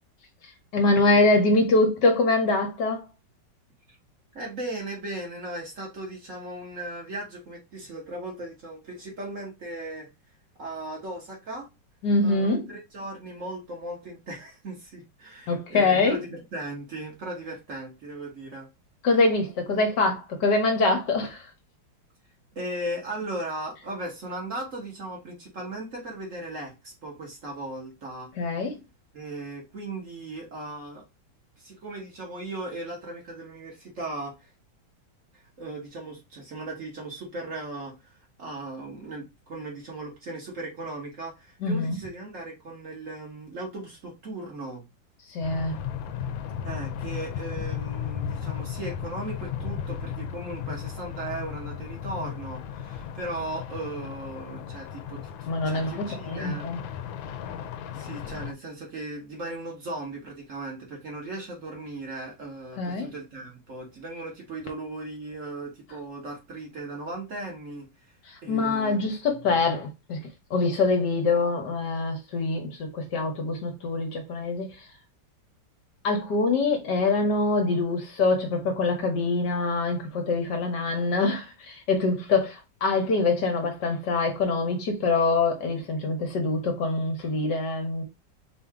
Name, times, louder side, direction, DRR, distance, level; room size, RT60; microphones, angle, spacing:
voice 1, 0.7-3.0 12.0-12.7 15.5-16.2 19.0-21.5 28.4-28.8 41.6-42.0 45.3-45.8 55.5-56.8 62.8-63.1 68.3-74.7 76.0-88.0, left 3 dB, 65° left, 1.5 m, -24 dB
voice 2, 4.3-10.1 10.6-11.7 12.2-18.7 22.5-28.3 29.1-31.0 31.6-34.5 35.6-44.8 46.6-56.7 57.9-69.4, right 2 dB, 45° right, 1.5 m, -37 dB
sound 1, 45.4-58.5, left 8 dB, 85° left, 1.4 m, -35 dB
4.6 x 2.7 x 3.5 m
omnidirectional pair, 2.0 m